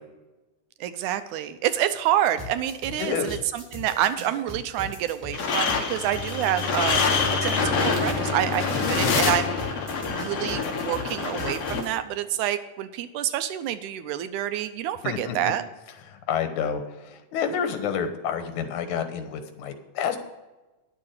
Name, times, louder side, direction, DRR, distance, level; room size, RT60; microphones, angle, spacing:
voice 1, 0.8-9.5 10.1-15.7, right 11 dB, 90° right, 11 dB, 2.2 m, -28 dB
sound 1, 2.4-11.9, left 1 dB, 15° right, 4.0 m, -39 dB
voice 2, 3.0-3.4 15.0-15.5 16.1-20.2, left 7 dB, 85° left, 8 dB, 2.5 m, -29 dB
sound 2, 5.3-11.8, left 5 dB, 60° left, 2.2 m, -26 dB
Bowed string instrument, 5.7-10.7, left 3 dB, 60° right, 2.9 m, -35 dB
10.5 x 7.2 x 6.5 m, 1.1 s
omnidirectional pair, 3.4 m